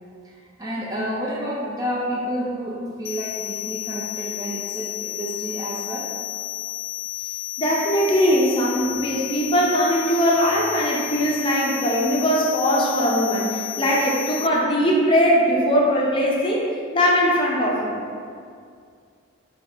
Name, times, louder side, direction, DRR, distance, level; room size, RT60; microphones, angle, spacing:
voice 1, 0.2-6.1, equal, 20° right, -4 dB, 0.4 m, -30 dB
sound 1, 3.0-14.5, left 17 dB, 75° left, 0.3 m, -32 dB
voice 2, 7.6-16.7 16.9-18.0, equal, 25° left, -3 dB, 0.6 m, -20 dB
5.4 x 2.8 x 3.3 m, 2.3 s
head